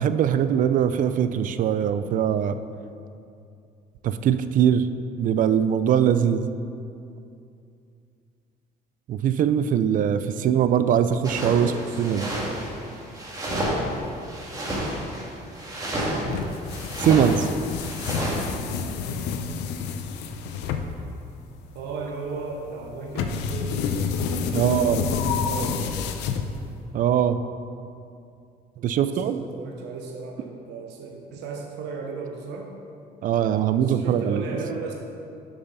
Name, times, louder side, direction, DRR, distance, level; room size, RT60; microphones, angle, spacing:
voice 1, 0.0-2.6 4.0-4.9 5.2-6.5 9.1-11.7 12.0-12.3 17.0-17.5 24.5-25.0 26.9-27.4 28.8-29.4 33.2-34.4, right 9 dB, 50° right, 11 dB, 0.4 m, -21 dB
sound 1, 11.2-18.5, right 1 dB, 20° right, 1.8 m, -30 dB
voice 2, 11.5-12.5 15.9-16.5 21.7-24.2 24.5-25.9 28.8-32.7 33.4-34.9, right 4 dB, 90° right, 1 dB, 0.8 m, -36 dB
sound 2, 16.3-26.9, left 5 dB, 85° left, 0.6 m, -29 dB
6.9 x 5.5 x 5.5 m, 2.5 s
cardioid pair, 110°, 17 cm